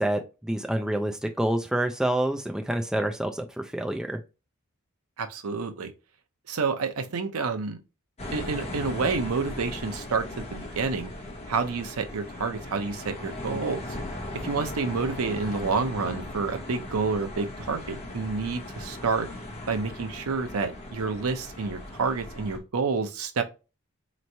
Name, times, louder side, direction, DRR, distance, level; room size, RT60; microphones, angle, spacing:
voice 1, 0.0-4.2, right 1 dB, 5° right, 0.3 m, -27 dB
voice 2, 5.2-5.9 6.5-7.8 8.3-10.3 10.5-11.1 11.5-13.9 14.3-19.3 19.7-23.4, right 4 dB, 80° right, 0.6 m, -29 dB
sound 1, 8.2-22.6, left 1 dB, 30° left, 1.0 m, -38 dB
4.3 x 3.0 x 2.6 m
head